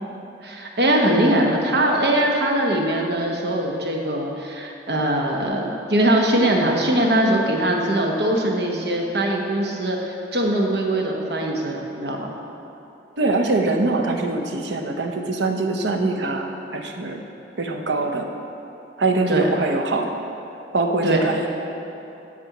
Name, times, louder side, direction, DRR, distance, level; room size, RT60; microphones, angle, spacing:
voice 1, 0.4-12.3 19.3-19.5 21.0-21.3, right 1 dB, 65° right, 0 dB, 1.1 m, -21 dB
voice 2, 13.2-17.2 17.6-18.3 19.0-20.1 20.7-21.5, right 3 dB, 80° right, 3 dB, 0.8 m, -23 dB
8.7 x 4.3 x 7.2 m, 2.9 s
head